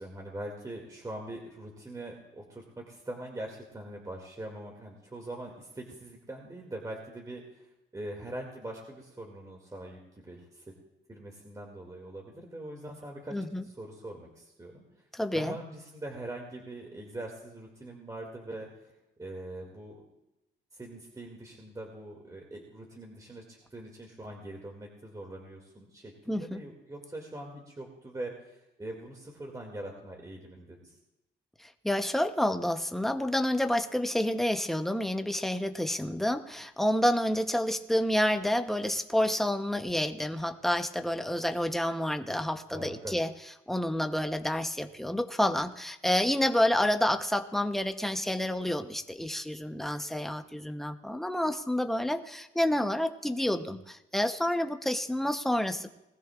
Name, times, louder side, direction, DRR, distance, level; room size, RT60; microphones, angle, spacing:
voice 1, 0.0-7.7 7.9-10.6 11.1-13.3 13.6-15.0 15.3-18.7 19.2-20.0 20.7-31.0 42.7-43.2, right 1 dB, 15° right, 0 dB, 2.4 m, -42 dB
voice 2, 13.3-13.6 15.1-15.5 26.3-26.6 31.6-43.3 43.7-55.9, left 1 dB, ahead, 7 dB, 0.9 m, -29 dB
20.0 x 14.5 x 2.5 m, 0.91 s
cardioid pair, 90°, 20 cm